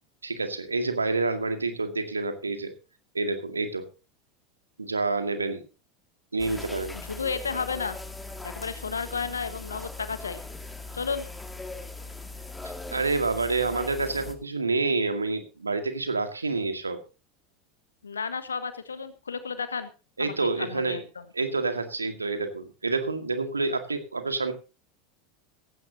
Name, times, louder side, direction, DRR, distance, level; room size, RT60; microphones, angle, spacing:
voice 1, 0.2-2.7 3.1-3.9 4.8-5.6 6.3-7.0 12.6-17.0 20.2-21.0 21.3-24.5, right 3 dB, 80° right, 8 dB, 2.1 m, -28 dB
sound 1, 6.4-14.4, left 3 dB, 10° left, 2.3 m, -40 dB
voice 2, 6.9-8.0 8.4-10.4 10.9-11.3 18.0-19.9 20.2-21.0, left 5 dB, 75° left, 12 dB, 1.5 m, -32 dB
16.5 x 16.0 x 2.9 m, 0.31 s
figure-of-eight pair, 80°, 0 cm